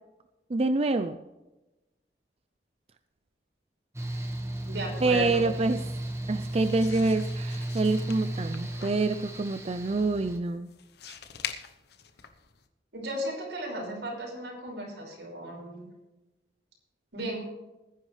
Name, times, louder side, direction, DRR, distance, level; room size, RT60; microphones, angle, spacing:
voice 1, 0.5-1.2 5.0-5.8 6.3-10.7, right 3 dB, 35° right, 9 dB, 0.5 m, -26 dB
Mechanical fan, 3.9-10.4, right 1 dB, 15° right, 1.6 m, -35 dB
voice 2, 4.7-5.7 12.9-15.9 17.1-17.4, equal, 85° right, -1 dB, 5.6 m, -35 dB
sound 1, 6.5-12.7, left 8 dB, 65° left, 1.0 m, -44 dB
20.0 x 10.0 x 3.3 m, 1.0 s
head